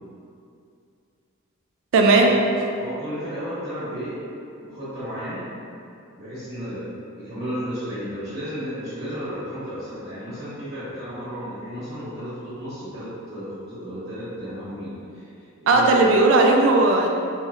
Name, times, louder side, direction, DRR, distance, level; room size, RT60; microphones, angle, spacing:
voice 1, 1.9-2.3 15.7-17.1, right 2 dB, 65° right, 1 dB, 0.3 m, -16 dB
voice 2, 2.8-4.2 4.6-5.5 6.2-15.3 15.7-16.2, equal, 30° right, -14 dB, 1.0 m, -33 dB
3.0 x 2.9 x 2.4 m, 2.5 s
head